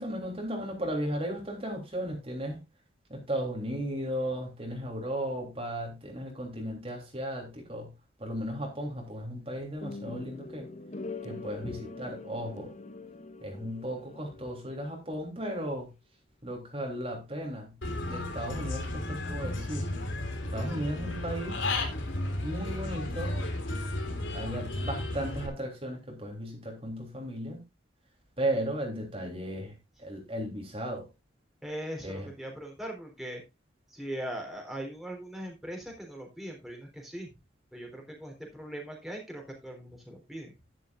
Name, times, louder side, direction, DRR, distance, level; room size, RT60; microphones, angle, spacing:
voice 1, 0.0-2.6 3.1-7.9 8.2-10.7 11.2-12.7 13.4-15.9 16.4-17.7 18.1-19.9 20.5-21.6 22.4-23.3 24.3-27.6 28.4-31.1 32.0-32.3, right 1 dB, 30° right, 0 dB, 3.3 m, -35 dB
sound 1, 9.8-14.9, left 3 dB, 40° left, 1.1 m, -43 dB
Human voice / Bird, 17.8-25.5, left 2 dB, 80° left, 3.4 m, -33 dB
voice 2, 31.6-33.4 33.9-37.3 37.7-40.5, right 1 dB, ahead, 0 dB, 3.9 m, -40 dB
12.0 x 11.5 x 2.5 m, 0.24 s
head